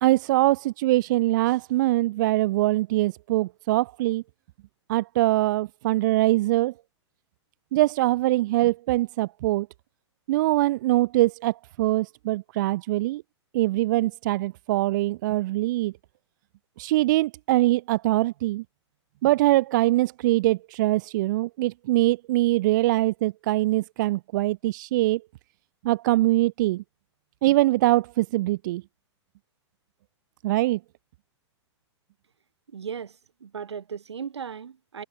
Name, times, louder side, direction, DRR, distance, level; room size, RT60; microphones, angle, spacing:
voice 1, 0.0-4.2 4.9-6.7 7.7-9.7 10.3-13.2 13.5-15.9 16.8-18.6 19.2-25.2 25.8-26.8 27.4-28.8 30.4-30.8, right 17 dB, 40° right, 0.5 m, -23 dB
voice 2, 32.7-33.2 33.4-35.0, right 7 dB, 65° right, 2.2 m, -36 dB
figure-of-eight pair, 105°, 15 cm